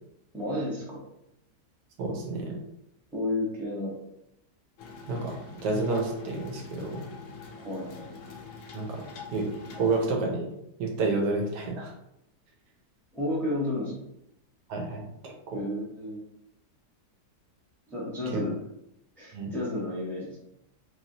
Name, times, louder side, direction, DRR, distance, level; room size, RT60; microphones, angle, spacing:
voice 1, 0.3-1.0 3.1-4.0 7.6-8.1 13.1-14.0 15.5-16.2 17.9-18.5 19.2-20.4, left 1 dB, ahead, -6 dB, 0.6 m, -32 dB
voice 2, 2.0-2.6 5.1-5.4 5.6-7.0 8.7-9.0 9.3-10.5 10.8-11.9 14.7-15.6 18.3-18.4 19.3-19.5, right 3 dB, 80° right, 1 dB, 1.3 m, -30 dB
sound 1, 4.8-10.1, left 4 dB, 75° left, 0.7 m, -45 dB
3.2 x 3.0 x 2.7 m, 0.81 s
omnidirectional pair, 1.8 m